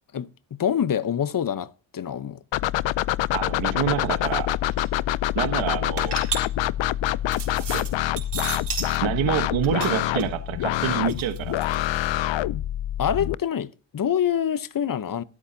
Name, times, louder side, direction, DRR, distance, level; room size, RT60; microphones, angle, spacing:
voice 1, 0.1-2.4 13.0-15.2, left 9 dB, 45° left, 0.9 m, -26 dB
sound 1, 2.5-13.3, left 13 dB, 75° left, 0.6 m, -26 dB
voice 2, 3.3-4.6 5.3-6.2 7.7-7.9 9.0-11.6, right 10 dB, 90° right, 1.3 m, -27 dB
sound 2, 4.2-4.3 4.5-4.9 5.4-9.0 9.4-12.0, right 5 dB, 60° right, 4.0 m, -34 dB
23.5 x 8.5 x 2.7 m
supercardioid pair, 50°, 45 cm